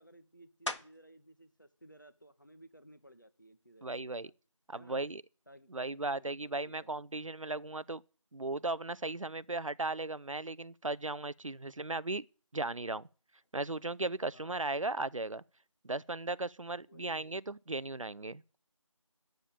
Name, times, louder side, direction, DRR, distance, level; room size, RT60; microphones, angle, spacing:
voice 1, 0.0-4.3 4.7-5.1 5.5-6.9 14.3-14.8 16.9-17.2, right 1 dB, 35° left, 1.1 m, -58 dB
sound 1, 0.7-1.3 1.8-6.2 6.8-11.9 12.2-17.9, left 1 dB, 60° left, 1.4 m, -51 dB
voice 2, 3.8-4.3 4.7-5.2 5.7-8.0 8.3-12.3 12.5-13.1 13.5-15.4 15.8-18.6, right 2 dB, 70° right, 0.6 m, -36 dB
8.9 x 7.3 x 8.6 m
figure-of-eight pair, 180°, 17 cm